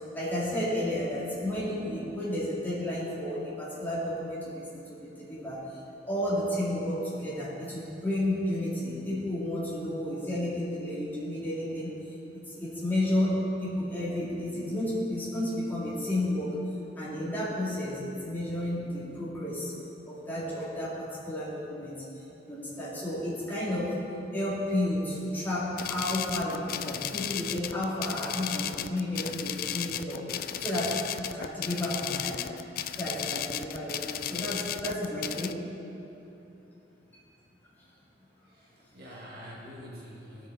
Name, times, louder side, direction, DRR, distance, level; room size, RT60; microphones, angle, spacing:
voice 1, 0.1-12.0 12.5-16.5 17.0-19.7 20.0-22.0 22.5-23.9 24.3-30.2 30.6-32.4 32.9-35.6, left 1 dB, 10° left, -9 dB, 2.8 m, -32 dB
sound 1, 25.8-35.5, left 10 dB, 55° left, 0.3 m, -35 dB
voice 2, 38.4-40.5, equal, 60° right, -4 dB, 1.9 m, -46 dB
17.5 x 6.4 x 4.1 m, 2.9 s
head